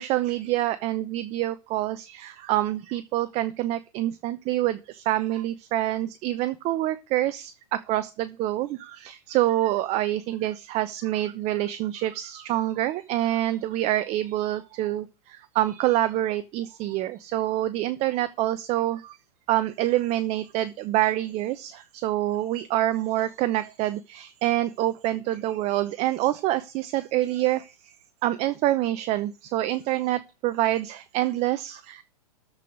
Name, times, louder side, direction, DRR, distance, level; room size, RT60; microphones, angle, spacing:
voice 1, 0.0-19.2 19.5-27.9 28.2-32.0, right 14 dB, 35° right, 12 dB, 0.8 m, -26 dB
13.5 x 4.9 x 6.4 m, 0.31 s
hypercardioid pair, 105°, 20 cm